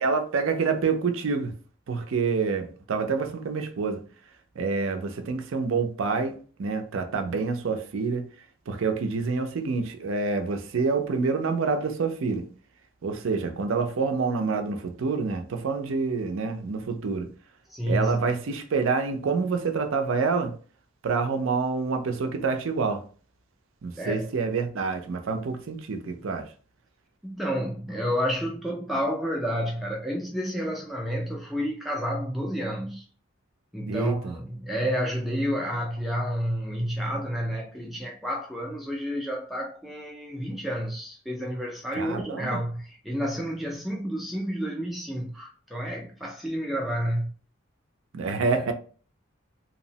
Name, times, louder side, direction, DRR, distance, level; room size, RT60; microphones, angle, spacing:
voice 1, 0.0-1.5 1.9-4.0 4.6-8.3 8.7-12.4 13.0-17.3 17.8-20.5 21.0-23.0 23.8-26.5 33.9-34.4 41.9-42.6 48.1-48.7, right 4 dB, 70° right, 0.4 m, -27 dB
voice 2, 17.7-18.2 24.0-24.3 27.2-33.0 33.7-47.3 48.5-48.6, equal, ahead, 0.3 m, -30 dB
2.8 x 2.0 x 2.7 m
head